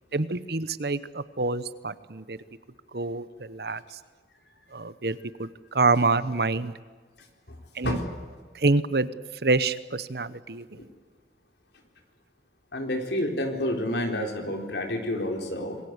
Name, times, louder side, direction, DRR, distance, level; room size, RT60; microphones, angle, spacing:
voice 1, 0.1-2.4 2.9-3.8 4.7-6.7 7.8-8.0 8.5-9.1 9.4-10.6, right 3 dB, 65° right, 15 dB, 1.0 m, -26 dB
voice 2, 12.7-15.8, left 1 dB, 80° left, 4 dB, 4.1 m, -29 dB
26.5 x 21.0 x 8.2 m, 1.5 s
head